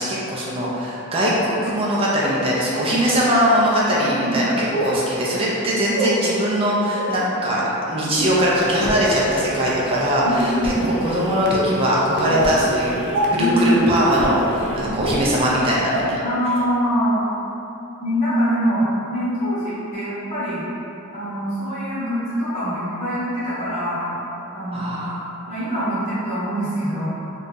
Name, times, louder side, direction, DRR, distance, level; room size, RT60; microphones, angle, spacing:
voice 1, 0.0-7.6 7.9-13.0 13.3-16.2 24.7-25.3, equal, 25° right, -6 dB, 0.4 m, -21 dB
sound 1, 2.2-2.3 3.2-3.3 4.7-4.9 5.9-6.1 6.9-7.1 8.1-8.4 8.9-9.2 9.9-10.0 10.6-10.8 11.5-11.6 12.3-12.4 13.1-13.2 14.1-14.2 15.0-15.1 15.9-16.0 16.5-16.6, right 2 dB, 85° right, 0.6 m, -25 dB
voice 2, 4.0-4.5 5.7-5.9 10.2-10.9 12.2-12.5 13.3-13.8 14.8-15.2 16.2-17.2 18.0-20.6 21.1-24.1 24.5-25.0 25.5-27.3, equal, 35° left, -12 dB, 0.9 m, -24 dB
sound 2, 8.1-16.1, equal, 60° left, 0.4 m, -30 dB
2.6 x 2.3 x 3.7 m, 3.0 s
head